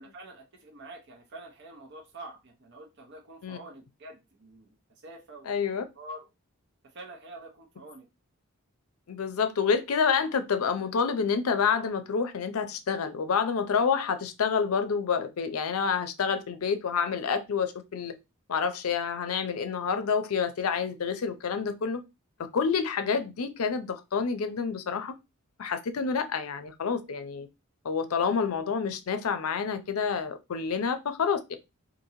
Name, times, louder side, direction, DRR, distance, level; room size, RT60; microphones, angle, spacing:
voice 1, 0.0-5.5 6.0-6.3 6.8-8.1, right 1 dB, 55° right, 0.7 m, -46 dB
voice 2, 5.5-5.8 9.1-18.1 18.5-22.0 22.5-25.1 25.6-27.5 27.8-31.6, left 6 dB, 85° left, 0.5 m, -28 dB
2.9 x 2.6 x 2.7 m
head